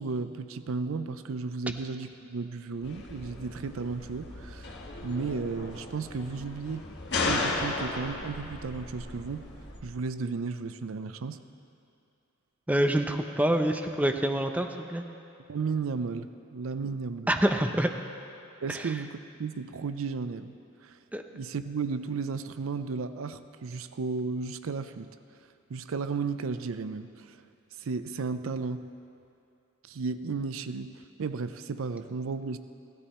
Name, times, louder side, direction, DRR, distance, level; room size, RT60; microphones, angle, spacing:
voice 1, 0.0-4.8 5.0-6.9 7.2-9.5 9.8-11.4 15.5-17.4 18.6-20.5 20.8-21.0 21.3-25.1 25.7-27.4 27.8-28.9 29.8-32.6, right 4 dB, 80° right, 12 dB, 0.5 m, -34 dB
sound 1, 2.8-9.8, left 3 dB, 55° left, 1.6 m, -35 dB
voice 2, 12.7-15.0 17.3-17.9 18.7-18.9 21.1-21.2, right 1 dB, 5° right, 5 dB, 0.5 m, -26 dB
16.5 x 13.0 x 4.3 m, 2.6 s
head